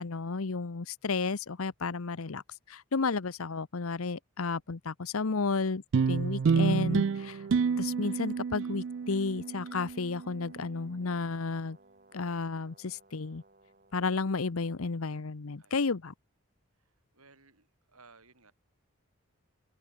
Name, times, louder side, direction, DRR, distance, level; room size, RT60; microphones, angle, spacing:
voice 1, 0.0-2.4 2.7-7.4 7.8-11.8 12.1-13.4 13.9-16.1, left 4 dB, 75° left, 0.8 m, -32 dB
sound 1, 5.9-10.6, right 5 dB, 55° right, 0.4 m, -29 dB
Brass instrument, 7.0-14.1, right 2 dB, 40° right, 3.8 m, -61 dB
voice 2, 16.8-18.5, right 4 dB, 85° right, 6.7 m, -60 dB
head